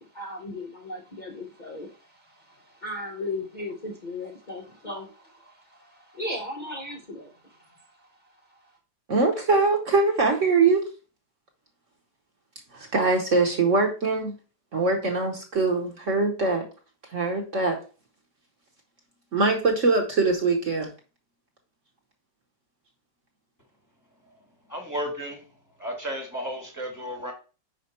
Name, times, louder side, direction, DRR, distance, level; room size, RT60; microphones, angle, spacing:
voice 1, 0.0-8.1 8.5-8.6, left 2 dB, 70° left, 0.4 m, -37 dB
voice 2, 9.1-10.8 12.7-14.3 14.7-16.6 17.1-17.8 19.3-20.9, right 3 dB, 50° right, 1.0 m, -22 dB
voice 3, 24.7-25.4 25.8-27.3, equal, 15° left, 0.8 m, -33 dB
5.1 x 5.0 x 4.2 m
omnidirectional pair, 2.1 m